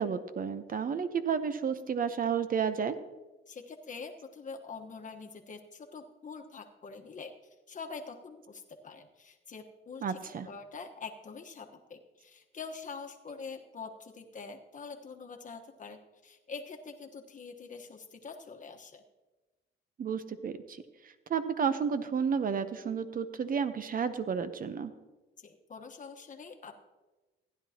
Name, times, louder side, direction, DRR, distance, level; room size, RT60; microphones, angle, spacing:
voice 1, 0.0-3.0 10.0-10.5 20.0-24.9, right 6 dB, 45° right, 12 dB, 0.8 m, -32 dB
voice 2, 3.5-7.3 7.7-19.0 25.4-26.8, left 5 dB, 40° left, 4 dB, 1.2 m, -45 dB
15.5 x 10.5 x 2.9 m, 1.2 s
cardioid pair, 90°, 20 cm